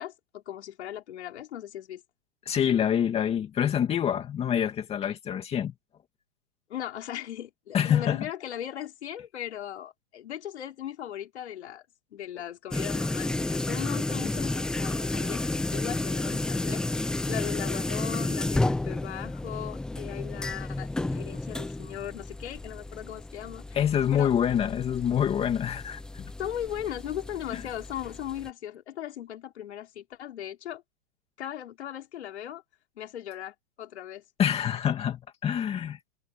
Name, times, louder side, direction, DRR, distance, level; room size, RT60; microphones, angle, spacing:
voice 1, 0.0-2.0 6.7-11.8 12.1-23.6 24.1-24.3 26.4-30.8 31.4-32.6 33.0-34.2, left 11 dB, 80° left, 4.6 m, -38 dB
voice 2, 2.5-5.7 7.7-8.3 23.7-26.3 27.5-27.6 34.4-36.0, left 9 dB, 20° left, 2.4 m, -26 dB
sound 1, 12.7-28.5, left 2 dB, ahead, 0.5 m, -32 dB
supercardioid pair, 155°, 33 cm